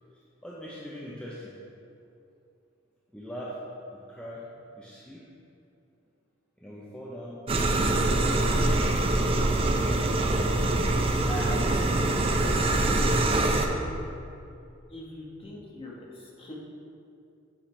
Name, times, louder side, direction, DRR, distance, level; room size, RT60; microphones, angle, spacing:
voice 1, 0.4-1.5 3.1-3.6 4.1-4.4 4.8-5.2 6.6-7.4 8.8-9.4, equal, 5° left, -7 dB, 0.7 m, -41 dB
sound 1, 7.5-13.7, right 2 dB, 30° right, 0.5 m, -24 dB
voice 2, 11.2-11.9 12.7-13.4 14.9-16.5, left 1 dB, 25° left, -4 dB, 1.2 m, -40 dB
8.8 x 5.7 x 3.3 m, 2.6 s
head